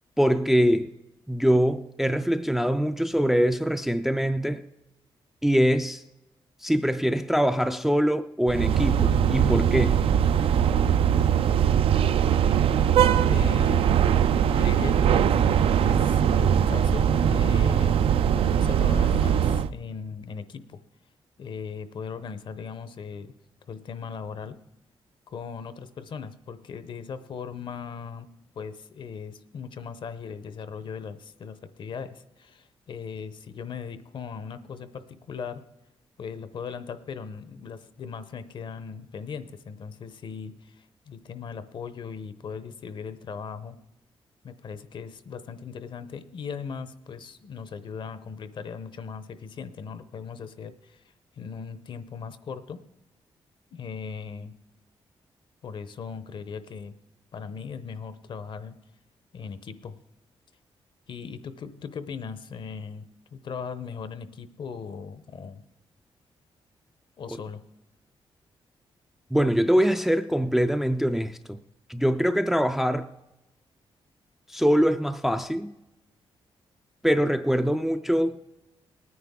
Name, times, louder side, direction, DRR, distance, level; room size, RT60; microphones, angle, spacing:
voice 1, 0.2-0.9 1.3-4.6 5.4-6.0 6.6-10.0 69.3-71.6 71.9-73.1 74.5-75.7 77.0-78.4, equal, 5° right, 0.3 m, -23 dB
sound 1, 8.5-19.7, right 9 dB, 70° right, 0.4 m, -21 dB
voice 2, 12.3-12.8 13.2-14.3 14.6-15.5 15.8-17.9 18.4-20.8 21.4-23.3 23.7-24.6 25.3-28.3 28.5-35.6 36.2-43.8 44.4-51.0 51.4-52.8 53.7-54.5 55.6-56.9 57.3-58.7 59.3-60.0 61.1-63.1 63.3-65.6 67.2-67.6, left 6 dB, 55° left, 0.7 m, -38 dB
19.5 x 9.5 x 3.6 m
wide cardioid pair, 150°, 10 cm